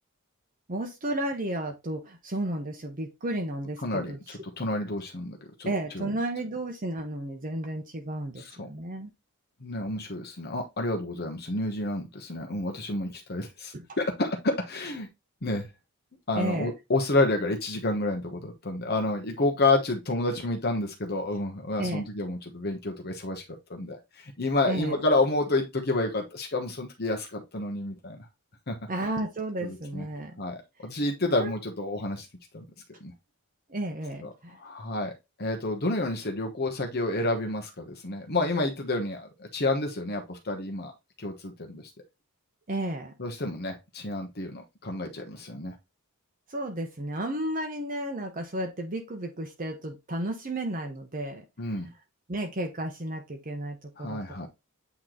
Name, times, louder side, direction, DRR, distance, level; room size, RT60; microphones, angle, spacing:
voice 1, 0.7-4.4 5.6-9.1 13.7-13.9 16.3-16.7 21.8-22.0 24.7-25.0 28.9-30.4 31.4-31.5 33.7-34.6 42.7-43.1 46.5-51.4 52.3-54.2, right 1 dB, 35° right, 4 dB, 0.8 m, -33 dB
voice 2, 3.8-5.7 5.9-6.1 8.4-8.7 9.6-15.1 15.4-15.7 16.3-23.4 23.7-28.2 28.7-28.8 29.6-30.1 30.4-32.3 32.5-32.6 33.0-33.1 34.2-34.3 34.5-35.1 35.4-40.9 41.2-41.8 43.2-45.8 51.6-51.9 54.0-54.5, left 2 dB, 45° left, 3 dB, 1.1 m, -29 dB
8.4 x 3.1 x 3.8 m, 0.23 s
head